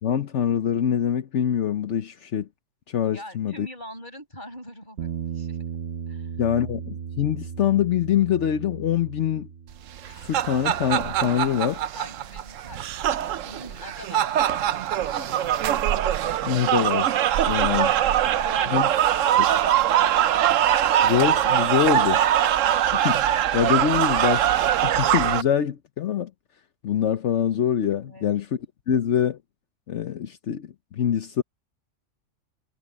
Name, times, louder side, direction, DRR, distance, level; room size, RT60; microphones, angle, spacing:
voice 1, 0.0-2.5 2.9-3.7 6.4-9.5 10.1-11.8 16.4-17.9 18.7-18.9 19.4-19.5 21.0-22.2 22.9-26.3 26.8-28.5 28.9-29.4 29.9-30.7 30.9-31.4, left 9 dB, 70° left, 1.1 m, -24 dB
voice 2, 3.1-5.8 6.1-6.3 11.3-11.6 11.9-15.5 17.6-19.6 28.0-28.3, left 1 dB, 40° left, 8.0 m, -44 dB
Bass guitar, 5.0-11.2, right 7 dB, 60° right, 1.0 m, -36 dB
sound 1, 10.0-25.4, right 11 dB, 85° right, 1.1 m, -22 dB
omnidirectional pair, 1.3 m